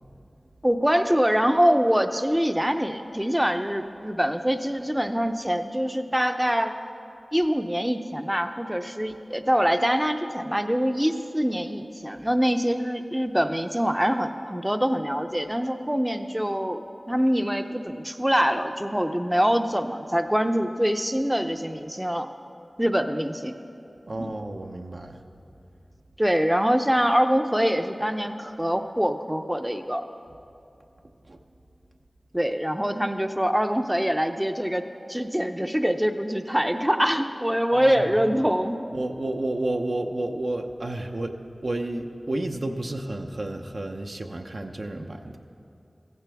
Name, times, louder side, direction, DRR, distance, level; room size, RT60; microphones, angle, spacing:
voice 1, 0.6-6.8 7.3-22.3 22.8-23.5 24.2-24.3 26.2-30.0 32.3-34.8 35.1-38.8, equal, 10° right, 7 dB, 0.6 m, -24 dB
voice 2, 24.1-25.2 31.3-31.4 37.7-38.0 38.9-41.4 41.6-45.4, right 1 dB, 65° right, 3 dB, 0.8 m, -31 dB
16.0 x 15.0 x 3.5 m, 2.6 s
wide cardioid pair, 40°, 0 cm